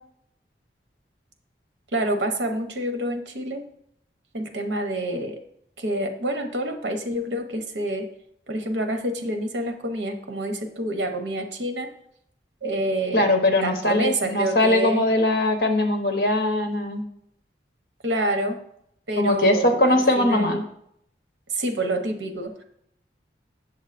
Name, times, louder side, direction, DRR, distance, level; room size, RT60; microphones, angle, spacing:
voice 1, 1.9-3.6 4.3-5.4 5.8-8.1 8.5-11.9 12.6-13.3 13.6-15.1 18.0-18.6 19.1-20.6 21.5-22.6, right 1 dB, 80° right, 5 dB, 0.9 m, -27 dB
voice 2, 13.1-17.0 19.2-20.6, left 1 dB, 55° left, 4 dB, 1.0 m, -21 dB
7.2 x 7.1 x 2.5 m, 0.71 s
head